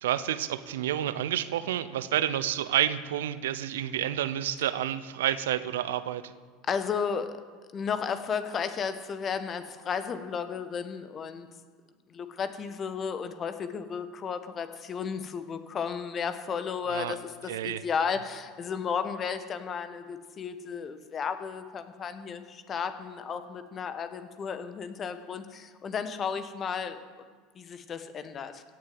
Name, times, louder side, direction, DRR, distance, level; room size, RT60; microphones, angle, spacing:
voice 1, 0.0-6.3 16.9-17.1 17.5-17.8, right 11 dB, 75° right, 14 dB, 0.7 m, -29 dB
voice 2, 6.7-7.3 7.7-11.5 12.1-27.0 27.5-28.6, left 6 dB, 35° left, 10 dB, 1.3 m, -33 dB
16.5 x 7.6 x 7.9 m, 1.5 s
figure-of-eight pair, 75°, 0 cm